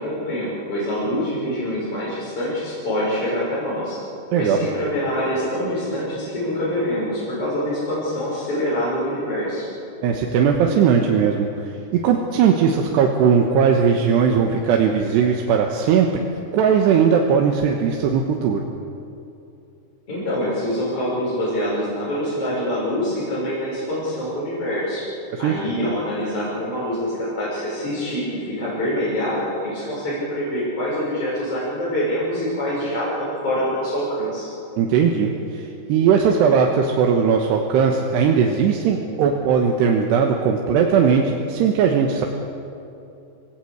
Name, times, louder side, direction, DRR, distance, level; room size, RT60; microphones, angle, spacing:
voice 1, 0.0-4.0 4.3-9.7 20.1-25.1 25.4-34.5, equal, 35° left, -9 dB, 7.0 m, -25 dB
voice 2, 10.0-11.5 11.9-16.3 16.5-18.7 25.3-25.6 34.8-42.3, right 6 dB, 80° right, 2 dB, 3.3 m, -18 dB
26.5 x 18.0 x 8.0 m, 2.7 s
omnidirectional pair, 4.9 m